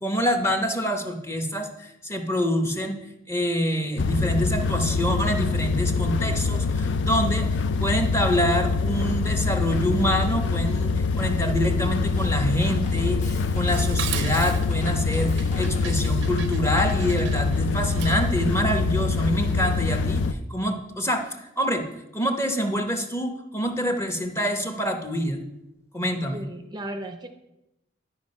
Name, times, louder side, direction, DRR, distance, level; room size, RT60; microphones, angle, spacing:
voice 1, 0.0-3.0 3.3-21.9 22.1-25.4 25.9-26.4, equal, 15° left, 5 dB, 0.8 m, -26 dB
sound 1, 4.0-20.3, left 4 dB, 70° left, 0.4 m, -24 dB
Drum kit, 12.2-16.3, left 2 dB, 40° left, 1.1 m, -41 dB
Dishes pots and pans, 13.7-18.4, right 10 dB, 75° right, 0.5 m, -37 dB
voice 2, 26.3-27.3, right 1 dB, 20° right, 7 dB, 0.5 m, -35 dB
11.5 x 4.8 x 5.3 m, 0.90 s
head